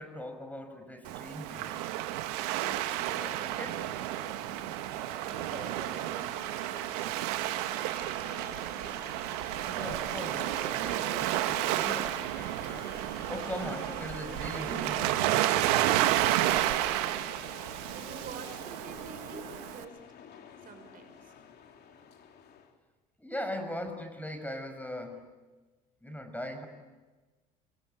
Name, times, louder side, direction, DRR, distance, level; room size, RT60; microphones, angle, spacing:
voice 1, 0.0-1.9 2.5-3.9 5.4-5.6 9.7-12.9 13.3-15.2 23.2-25.3 26.0-26.7, left 1 dB, 10° left, 7 dB, 5.9 m, -40 dB
Waves surf, 1.0-19.8, right 14 dB, 75° right, 1.5 m, -31 dB
sound 1, 2.9-22.7, left 7 dB, 55° left, 3.4 m, -50 dB
voice 2, 5.1-7.4 8.2-9.0 17.8-20.0 20.6-21.3, right 4 dB, 45° right, 7 dB, 5.4 m, -47 dB
27.0 x 22.5 x 9.0 m, 1.2 s
hypercardioid pair, 65°, 20 cm